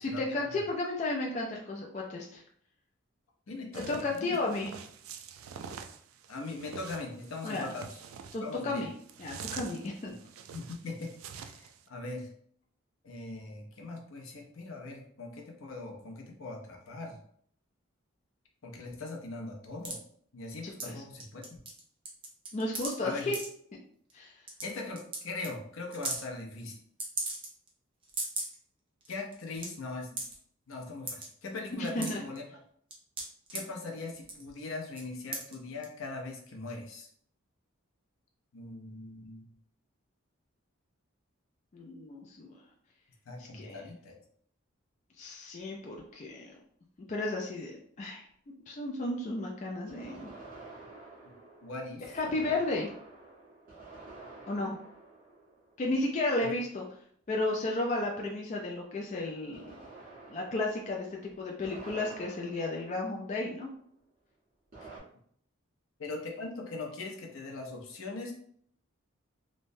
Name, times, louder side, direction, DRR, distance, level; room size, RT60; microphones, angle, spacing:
voice 1, 0.0-2.4 3.7-4.7 7.4-7.7 8.3-8.9 9.2-10.1 20.8-21.0 22.5-23.4 24.1-24.3 31.7-32.2 41.7-42.6 43.5-43.8 45.2-46.5 47.1-50.3 52.1-52.9 54.5-54.8 55.8-56.8 57.3-59.7 60.3-63.7, left 2 dB, 35° left, -1 dB, 0.3 m, -33 dB
voice 2, 3.5-4.4 6.3-8.0 8.4-8.8 10.5-12.3 13.0-17.2 18.6-20.0 20.3-21.6 23.0-23.3 24.6-26.8 29.1-30.2 30.7-32.4 33.5-37.1 38.5-39.5 43.3-44.2 51.6-52.0 56.4-56.5 64.8-64.9 66.0-68.3, left 3 dB, 75° left, 0 dB, 0.6 m, -41 dB
sound 1, 3.7-11.8, right 7 dB, 85° right, 0.3 m, -46 dB
sound 2, 19.8-20.0 20.8-20.9 21.2-21.8 22.1-22.9 23.3-23.5 24.1-24.2 24.5-24.6 25.0-25.2 25.4-25.5 25.9-26.2 27.0-27.7 28.0-28.6 29.0-29.1 29.3-29.7 30.2-30.4 31.1-31.3 31.7-32.4 32.9-33.6 34.2-34.5 34.9-35.0 35.3-35.5 35.8-35.9, right 3 dB, 25° right, 0.5 m, -36 dB
sound 3, 45.9-46.0 49.9-56.4 59.5-63.8 64.7-65.0, right 3 dB, 40° right, 1.2 m, -50 dB
3.1 x 2.1 x 2.6 m, 0.63 s
head